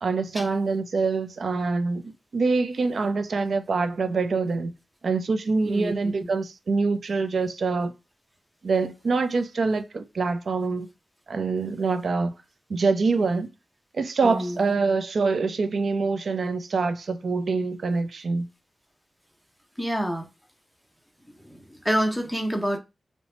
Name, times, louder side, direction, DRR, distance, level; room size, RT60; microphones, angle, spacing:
voice 1, 0.0-4.7 5.0-7.9 8.6-10.9 11.3-12.3 12.7-13.5 13.9-18.5, right 4 dB, 65° right, 0.3 m, -25 dB
voice 2, 14.2-14.6 19.8-20.3 21.4-22.8, equal, ahead, 0.6 m, -27 dB
2.9 x 2.1 x 2.8 m
wide cardioid pair, 95°, 0 cm